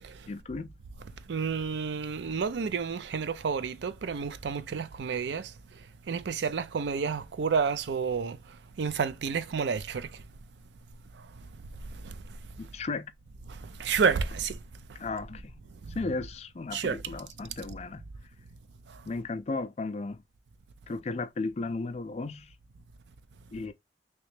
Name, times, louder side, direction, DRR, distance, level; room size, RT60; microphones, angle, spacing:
voice 1, 0.3-0.8 12.6-13.1 15.0-15.6 15.9-18.1 19.1-20.2 20.9-22.5 23.5-23.7, left 3 dB, 35° left, 0.4 m, -35 dB
voice 2, 1.3-5.5 6.1-8.4 8.8-10.1 11.9-12.1 13.5-14.6 15.9-16.0 16.7-17.2, right 5 dB, 85° right, 0.4 m, -30 dB
3.2 x 3.0 x 3.1 m
head